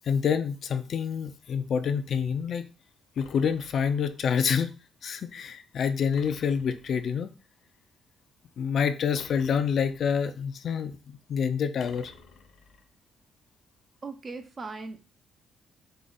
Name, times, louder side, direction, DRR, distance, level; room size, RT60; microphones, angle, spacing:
voice 1, 0.0-2.6 3.2-4.7 5.0-7.3 8.6-12.1, left 7 dB, 60° left, 9 dB, 0.5 m, -27 dB
sound 1, 3.2-4.2 6.1-7.2 9.1-10.3 11.8-12.9, left 5 dB, 75° left, 0.8 m, -52 dB
voice 2, 14.0-15.0, right 3 dB, 40° right, 7 dB, 0.7 m, -38 dB
4.9 x 2.4 x 4.0 m, 0.33 s
cardioid pair, 90°, 0 cm